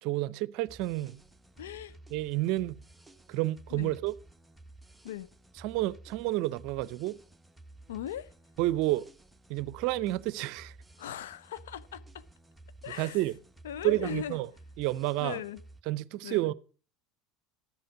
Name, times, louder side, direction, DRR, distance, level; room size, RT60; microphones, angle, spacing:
voice 1, 0.0-1.2 2.1-2.8 3.3-4.1 5.6-7.2 8.6-9.0 9.5-10.7 13.0-13.3 13.8-14.5 14.8-15.4 15.9-16.5, right 17 dB, 60° right, 0.6 m, -30 dB
sound 1, 0.7-15.8, right 2 dB, 5° right, 1.1 m, -54 dB
voice 2, 1.6-1.9 3.7-3.9 5.0-5.3 7.9-8.3 11.0-12.2 12.8-13.2 13.6-14.4 15.2-15.6 16.2-16.5, left 11 dB, 80° left, 0.7 m, -39 dB
13.0 x 7.8 x 6.3 m
hypercardioid pair, 80°, 0 cm